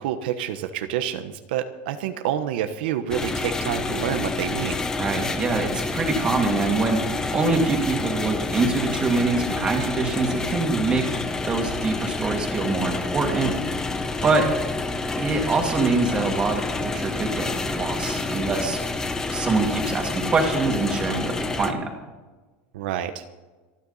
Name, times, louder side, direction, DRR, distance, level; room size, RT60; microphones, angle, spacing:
voice 1, 0.0-4.8 22.7-23.2, right 10 dB, 75° right, 8 dB, 1.1 m, -28 dB
sound 1, 3.1-21.7, left 3 dB, 10° left, 0.9 m, -28 dB
voice 2, 5.0-11.2 11.5-13.8 14.2-14.4 15.2-18.8 19.3-21.9, right 3 dB, 20° right, 2 dB, 2.4 m, -24 dB
27.0 x 10.0 x 4.2 m, 1.3 s
supercardioid pair, 175°, 5 cm